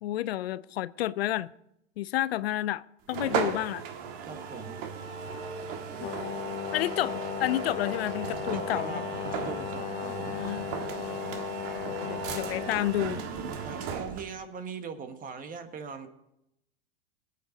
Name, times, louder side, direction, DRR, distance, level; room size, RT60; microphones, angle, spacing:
voice 1, 0.0-1.5 2.0-3.8 6.0-6.1 6.7-9.0 10.3-10.6 11.8-13.2, left 14 dB, 80° left, 0.6 m, -30 dB
sound 1, 3.1-14.4, right 6 dB, 50° right, 1.6 m, -36 dB
voice 2, 4.2-4.8 8.5-9.0 9.3-10.4 13.6-16.1, right 6 dB, 30° right, 1.5 m, -40 dB
Brass instrument, 6.0-13.0, left 14 dB, 30° left, 0.5 m, -36 dB
20.5 x 8.7 x 4.0 m
hypercardioid pair, 115°, 30 cm